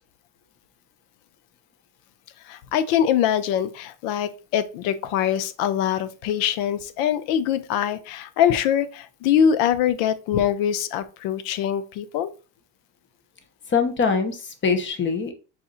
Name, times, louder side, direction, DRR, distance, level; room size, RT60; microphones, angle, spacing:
voice 1, 2.5-12.3, left 9 dB, 85° left, 13 dB, 0.6 m, -23 dB
voice 2, 13.7-15.3, left 5 dB, 25° left, 7 dB, 0.7 m, -23 dB
4.2 x 2.4 x 3.8 m, 0.33 s
cardioid pair, 130°, 46 cm